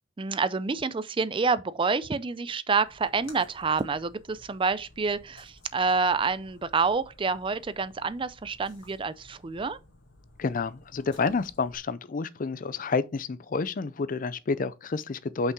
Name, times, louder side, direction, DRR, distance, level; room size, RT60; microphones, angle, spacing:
voice 1, 0.2-9.8, right 4 dB, 30° right, 0.4 m, -28 dB
Splash splatter, 2.8-11.7, left 2 dB, 85° left, 2.0 m, -55 dB
voice 2, 10.4-15.5, left 4 dB, 45° left, 0.5 m, -29 dB
5.8 x 5.6 x 4.6 m
head